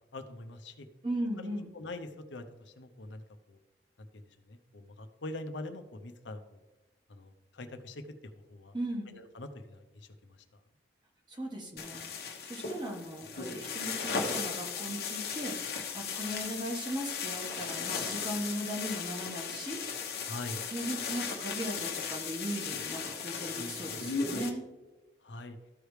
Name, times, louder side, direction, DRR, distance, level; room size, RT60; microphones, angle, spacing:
voice 1, 0.1-0.9 1.4-3.2 3.5-3.6 4.0-6.6 7.1-8.0 8.3-8.7 9.1-10.4 20.2-20.6 25.2-25.6, left 2 dB, 85° left, 7 dB, 0.8 m, -44 dB
voice 2, 1.0-1.7 8.7-9.1 11.3-19.8 20.7-24.6, right 1 dB, 25° right, 0 dB, 1.4 m, -38 dB
sound 1, 11.8-24.5, left 5 dB, 60° left, 1.1 m, -36 dB
13.5 x 4.9 x 3.2 m, 1.2 s
head